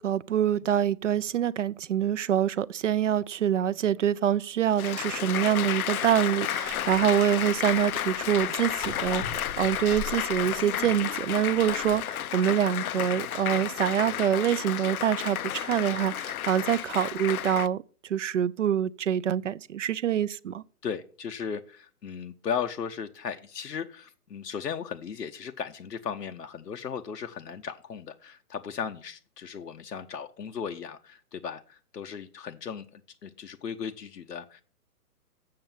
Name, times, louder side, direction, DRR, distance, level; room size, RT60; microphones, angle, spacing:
voice 1, 0.0-20.6, right 10 dB, 55° right, 0.5 m, -26 dB
Applause, 4.8-17.7, left 11 dB, 65° left, 0.5 m, -32 dB
sound 1, 6.6-12.0, left 4 dB, 20° left, 0.7 m, -41 dB
voice 2, 20.8-34.6, left 7 dB, 85° left, 0.9 m, -36 dB
7.6 x 6.9 x 7.2 m
hypercardioid pair, 140°, 47 cm